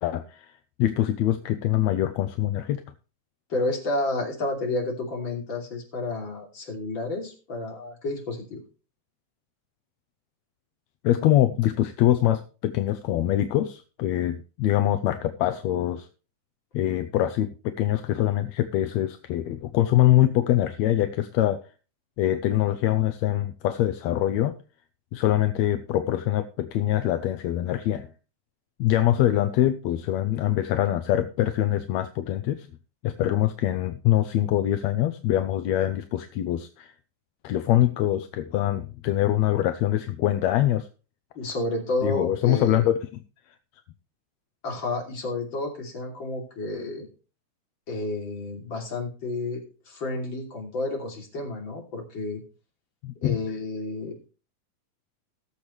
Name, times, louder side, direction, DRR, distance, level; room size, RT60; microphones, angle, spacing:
voice 1, 0.0-2.8 11.0-16.1 16.7-21.6 22.2-24.6 25.1-28.1 28.8-32.7 33.0-36.9 37.4-40.9 42.0-43.0 53.0-53.4, left 13 dB, 75° left, 10 dB, 1.8 m, -24 dB
voice 2, 3.5-8.6 41.4-42.9 44.6-47.1 47.9-52.4 53.2-54.3, left 2 dB, 40° left, 0 dB, 3.6 m, -31 dB
18.5 x 7.1 x 3.2 m, 0.35 s
omnidirectional pair, 3.5 m